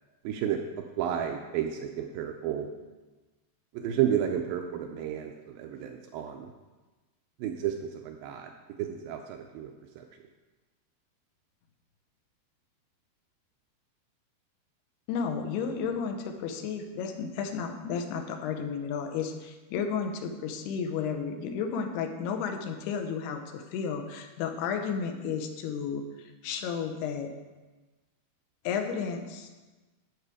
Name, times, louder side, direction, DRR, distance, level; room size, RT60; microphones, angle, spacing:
voice 1, 0.2-0.6 1.0-2.7 3.7-6.5 7.4-8.5 8.8-10.1, right 10 dB, 85° right, 4 dB, 2.1 m, -32 dB
voice 2, 15.1-27.3 28.6-29.7, left 6 dB, 85° left, 5 dB, 2.9 m, -33 dB
11.0 x 7.5 x 4.9 m, 1.2 s
omnidirectional pair, 4.6 m